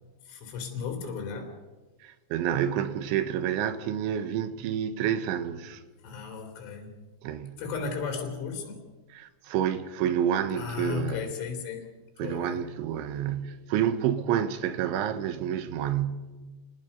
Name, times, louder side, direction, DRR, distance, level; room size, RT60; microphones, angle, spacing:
voice 1, 0.3-1.5 6.0-7.0 7.6-8.8 10.5-11.9 12.2-12.6, left 5 dB, 75° left, 5.3 m, -35 dB
voice 2, 2.0-5.8 7.2-7.6 9.1-11.3 12.2-16.3, right 9 dB, 85° right, 3.5 m, -29 dB
28.0 x 19.5 x 5.3 m
omnidirectional pair, 5.5 m